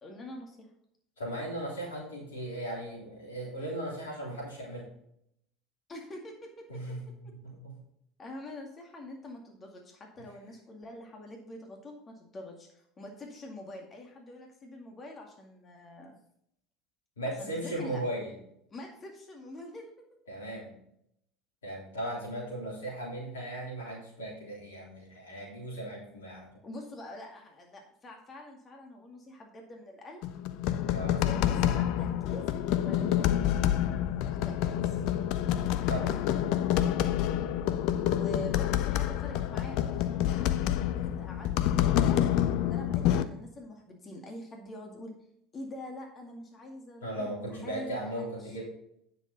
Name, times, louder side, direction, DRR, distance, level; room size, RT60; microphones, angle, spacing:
voice 1, 0.0-0.7 5.9-6.8 7.2-7.3 8.2-16.2 17.4-18.0 18.7-19.9 26.6-30.2 31.2-32.5 32.8-35.0 38.1-45.1 45.5-48.6, left 1 dB, 30° left, 1 dB, 2.1 m, -45 dB
voice 2, 1.2-4.9 6.7-7.8 17.2-18.4 20.3-20.8 21.6-26.6 30.9-31.3 35.9-36.2 36.7-36.9 47.0-48.6, right 1 dB, 80° left, -3 dB, 3.5 m, -37 dB
sound 1, 30.2-43.2, left 11 dB, 60° left, 0.6 m, -28 dB
9.6 x 6.7 x 4.1 m, 0.74 s
figure-of-eight pair, 70°, 0 cm